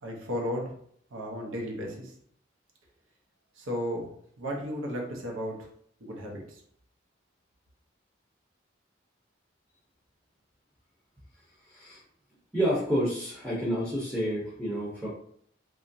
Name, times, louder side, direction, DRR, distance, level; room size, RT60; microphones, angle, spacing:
voice 1, 0.0-0.7 1.1-2.1 3.6-4.1 4.4-5.5 6.0-6.6, equal, 90° right, 0 dB, 0.7 m, -34 dB
voice 2, 11.7-12.0 12.5-15.1, equal, ahead, -7 dB, 0.5 m, -29 dB
2.9 x 2.3 x 2.6 m, 0.64 s
head